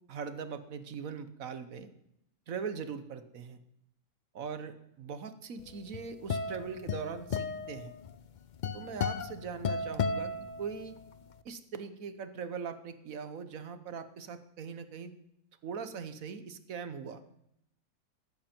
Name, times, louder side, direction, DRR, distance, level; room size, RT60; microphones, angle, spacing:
voice 1, 0.1-1.9 2.5-3.6 4.3-7.9 8.7-10.3 10.6-11.0 11.4-15.1 15.6-17.2, right 6 dB, 65° right, 11 dB, 1.4 m, -41 dB
sound 1, 5.7-11.1, left 4 dB, 70° left, 0.4 m, -35 dB
14.5 x 13.0 x 4.5 m, 0.77 s
omnidirectional pair, 1.6 m